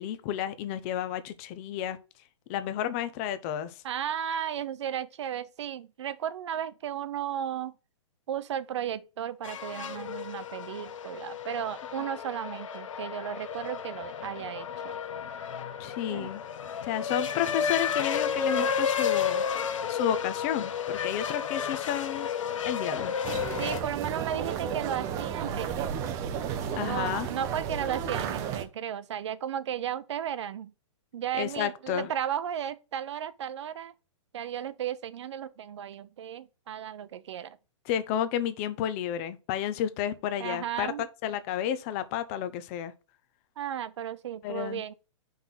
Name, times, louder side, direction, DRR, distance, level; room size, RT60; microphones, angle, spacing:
voice 1, 0.0-2.0 2.5-3.8 15.8-16.4 16.8-19.4 19.9-22.3 22.6-23.1 26.8-27.3 31.4-32.1 37.9-40.9 41.2-42.9 44.4-44.8, left 10 dB, 25° left, 0.6 m, -31 dB
voice 2, 3.8-7.7 8.3-15.0 16.1-16.3 23.6-25.9 26.8-30.7 31.1-33.9 34.3-37.6 40.4-41.1 43.6-44.9, right 9 dB, 60° right, 0.7 m, -34 dB
sound 1, 9.4-23.8, left 7 dB, 80° left, 0.9 m, -32 dB
sound 2, 23.2-28.7, right 8 dB, 20° right, 0.5 m, -33 dB
5.5 x 3.8 x 5.9 m
hypercardioid pair, 165°, 16 cm